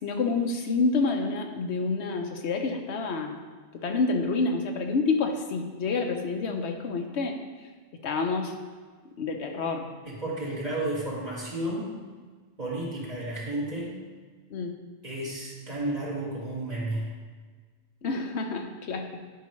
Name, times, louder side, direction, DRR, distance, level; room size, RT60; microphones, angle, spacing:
voice 1, 0.0-3.4 3.7-7.4 8.0-8.5 9.2-9.9 14.5-14.7 18.0-19.2, left 4 dB, 80° left, 4 dB, 1.1 m, -28 dB
voice 2, 10.0-11.9 12.6-14.0 15.0-17.1, right 1 dB, 35° right, -6 dB, 2.1 m, -32 dB
10.5 x 5.6 x 3.2 m, 1.5 s
omnidirectional pair, 1.1 m